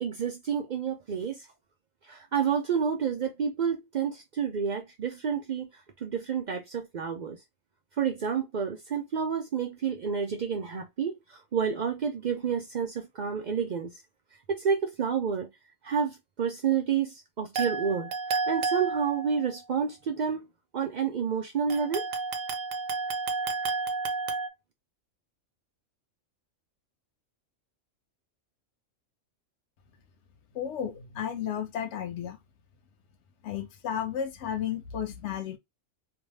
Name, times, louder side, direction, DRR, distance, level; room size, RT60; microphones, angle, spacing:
voice 1, 0.0-1.5 2.1-7.4 8.0-14.0 14.5-15.5 15.8-18.1 18.5-20.5 20.7-22.1, right 7 dB, 75° right, 0.4 m, -29 dB
sound 1, 17.6-19.6 21.7-24.5, right 4 dB, 90° right, 1.0 m, -31 dB
voice 2, 30.5-32.4 33.4-35.6, left 9 dB, 70° left, 0.8 m, -33 dB
2.6 x 2.1 x 3.2 m
omnidirectional pair, 1.3 m